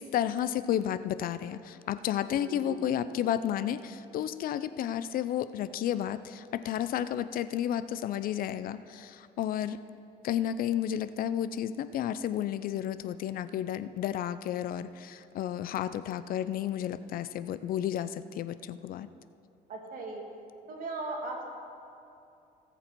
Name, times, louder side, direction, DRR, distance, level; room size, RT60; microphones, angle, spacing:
voice 1, 0.0-9.8 10.2-19.1, left 10 dB, 60° left, 14 dB, 0.4 m, -32 dB
voice 2, 2.3-2.8 3.3-3.4 19.7-20.2 20.7-21.4, right 3 dB, 55° right, 0 dB, 2.4 m, -38 dB
18.5 x 7.0 x 4.5 m, 2.7 s
cardioid pair, 110°, 17 cm